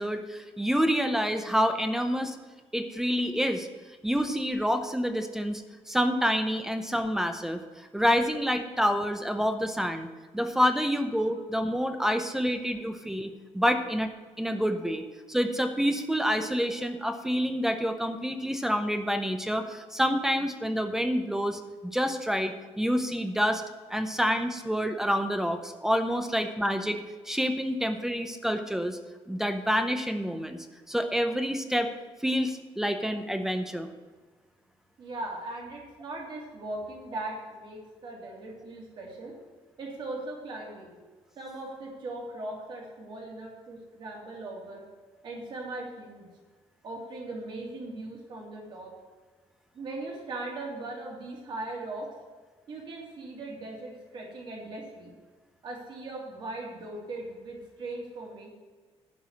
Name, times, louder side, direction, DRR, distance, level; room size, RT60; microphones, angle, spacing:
voice 1, 0.0-2.3 2.7-3.7 4.0-5.6 5.9-7.6 7.9-10.1 10.3-14.1 14.4-15.0 15.3-23.6 23.9-27.0 27.3-29.0 29.3-30.6 30.9-31.9 32.2-33.9, equal, 5° right, 7 dB, 0.6 m, -27 dB
voice 2, 35.0-39.3 39.8-40.9 41.4-44.8 45.2-46.3 46.8-48.9 49.7-52.1 52.7-55.1 55.6-58.5, right 2 dB, 45° right, -2 dB, 3.0 m, -39 dB
11.5 x 4.7 x 8.2 m, 1.4 s
cardioid pair, 175°, 11 cm